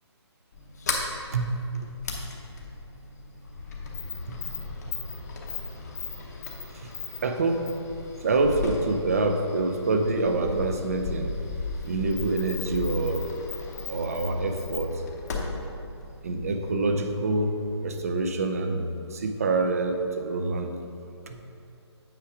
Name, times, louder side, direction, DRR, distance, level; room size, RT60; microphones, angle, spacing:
Sliding door, 0.5-16.9, left 4 dB, 35° left, 0.9 m, -36 dB
voice 1, 1.3-2.0 2.4-2.5 4.3-4.6 6.7-6.9 7.2-7.7 8.2-11.4 11.8-13.3 13.9-15.0 16.2-18.8 19.1-20.9 21.3-21.4, right 3 dB, 35° right, 6 dB, 0.5 m, -26 dB
8.8 x 4.6 x 4.9 m, 2.6 s
hypercardioid pair, 170°, 15 cm